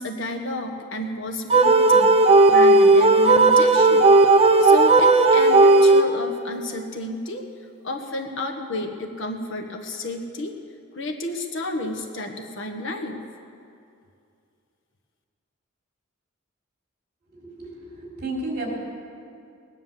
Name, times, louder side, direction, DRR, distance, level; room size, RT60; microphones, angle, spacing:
voice 1, 0.0-2.2 2.5-4.1 4.6-7.4 7.8-10.6 10.9-13.2, left 1 dB, 60° left, 3 dB, 1.4 m, -31 dB
sound 1, 1.5-6.4, right 3 dB, 25° right, 0.6 m, -15 dB
voice 2, 17.3-18.7, right 2 dB, 45° right, -2 dB, 3.8 m, -33 dB
18.5 x 10.0 x 7.4 m, 2.4 s
head